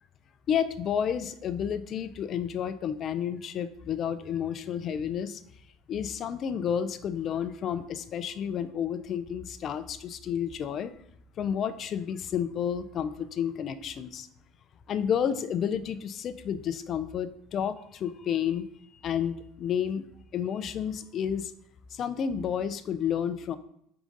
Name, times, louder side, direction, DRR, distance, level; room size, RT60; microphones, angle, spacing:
voice 1, 0.5-5.4 5.9-10.9 11.4-14.3 14.9-18.6 18.9-20.0 20.3-21.5 21.9-23.6, left 8 dB, 40° left, 12 dB, 0.5 m, -31 dB
4.8 x 3.7 x 5.2 m, 0.72 s
cardioid pair, 130°, 0 cm